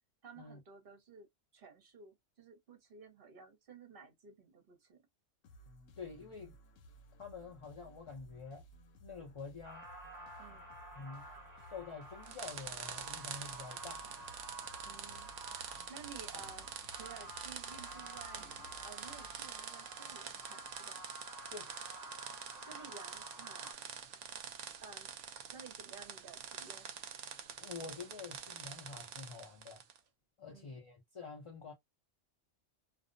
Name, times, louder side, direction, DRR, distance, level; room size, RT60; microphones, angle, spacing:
voice 1, 0.2-1.3 1.5-5.0 10.4-10.7 14.8-15.3 15.6-18.5 18.8-21.0 22.5-23.8 24.8-25.1 25.5-26.9 30.5-30.8, right 5 dB, 50° right, 1.0 m, -54 dB
sound 1, 5.4-20.0, right 1 dB, 85° left, 1.0 m, -59 dB
voice 2, 6.0-6.6 7.2-8.6 9.0-9.9 10.9-11.3 11.5-14.0 21.5-21.7 27.6-29.8 30.4-31.7, left 5 dB, 40° left, 0.5 m, -48 dB
sound 2, 9.6-23.7, right 1 dB, 20° right, 0.6 m, -51 dB
sound 3, 12.2-30.0, right 8 dB, 75° right, 0.9 m, -47 dB
2.5 x 2.0 x 2.5 m
omnidirectional pair, 1.3 m